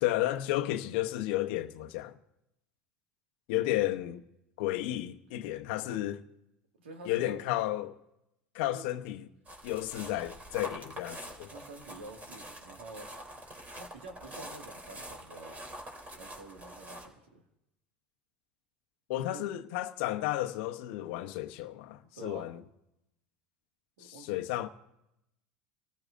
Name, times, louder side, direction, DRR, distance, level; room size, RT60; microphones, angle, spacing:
voice 1, 0.0-2.1 3.5-4.2 4.6-6.2 7.0-7.9 8.5-9.3 9.6-11.5 19.1-22.6 24.0-24.7, left 15 dB, 70° left, 0.8 m, -32 dB
voice 2, 6.8-7.4 8.6-8.9 11.5-13.1 13.7-15.6 16.1-17.4 19.2-19.5 22.1-22.5 24.0-24.4, right 3 dB, 90° right, 1.9 m, -48 dB
sound 1, 9.5-17.1, right 1 dB, 25° right, 3.1 m, -45 dB
25.5 x 14.0 x 2.5 m
hypercardioid pair, 95°, 6 cm